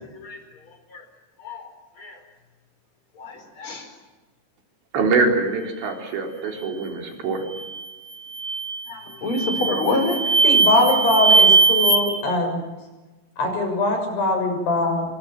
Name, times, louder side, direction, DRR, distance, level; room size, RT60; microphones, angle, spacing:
voice 1, 3.2-3.8 8.9-10.2, left 2 dB, 30° left, 7 dB, 5.3 m, -26 dB
voice 2, 4.9-7.5, right 3 dB, 85° right, 2 dB, 6.2 m, -23 dB
sound 1, 7.5-7.8 8.3-8.8 9.3-12.0, right 4 dB, 45° right, 5.9 m, -19 dB
voice 3, 10.4-12.6 13.4-15.0, left 2 dB, 70° left, 4 dB, 8.8 m, -21 dB
28.0 x 25.0 x 7.6 m, 1.2 s
omnidirectional pair, 4.9 m